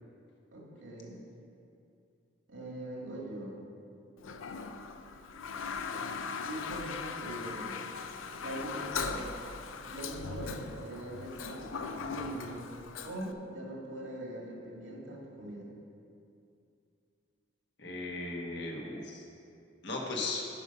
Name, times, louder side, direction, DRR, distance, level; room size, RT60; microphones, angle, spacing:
voice 1, 0.5-1.2 2.5-3.6 6.4-7.9 8.4-9.3 9.9-12.7 13.0-15.7, right 1 dB, 75° right, -2 dB, 2.0 m, -42 dB
Toilet flush, 4.2-13.3, left 5 dB, 85° left, 0.5 m, -39 dB
voice 2, 17.8-19.2 19.8-20.4, left 2 dB, 60° left, -1 dB, 1.4 m, -36 dB
11.0 x 5.5 x 5.4 m, 2.6 s
head